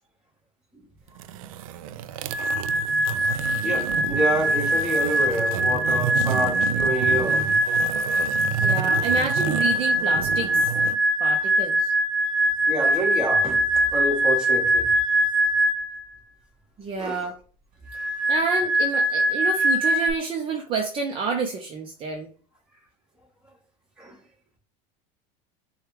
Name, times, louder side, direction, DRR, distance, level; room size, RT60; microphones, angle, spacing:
sound 1, 1.1-11.0, right 10 dB, 85° right, 0.4 m, -31 dB
sound 2, 2.3-16.0 17.9-20.1, equal, 55° right, 1.2 m, -23 dB
voice 1, 3.6-7.5 11.4-11.5 12.7-14.9 16.9-17.3 18.0-18.1 24.0-24.2, right 1 dB, 5° right, 1.5 m, -28 dB
voice 2, 8.6-10.6 11.2-11.9 16.8-17.3 18.0-22.3, right 4 dB, 30° right, 0.7 m, -29 dB
6.6 x 2.4 x 3.2 m
supercardioid pair, 130°, 17 cm